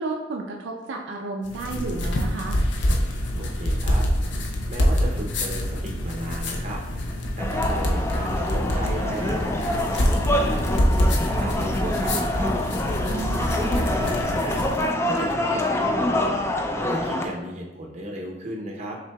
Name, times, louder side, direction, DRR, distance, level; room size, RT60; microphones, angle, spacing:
voice 1, 0.0-2.6 13.1-13.4, right 3 dB, 85° right, 0 dB, 0.4 m, -32 dB
sound 1, 1.4-14.9, equal, 75° left, 0.6 m, -25 dB
voice 2, 3.4-4.1 4.7-7.1 7.4-12.6 13.4-14.7 15.1-16.4 16.8-19.0, right 1 dB, 40° right, 0 dB, 0.6 m, -35 dB
sound 2, 7.4-17.3, left 1 dB, 15° left, 0.3 m, -26 dB
5.7 x 3.7 x 2.3 m, 1.0 s
head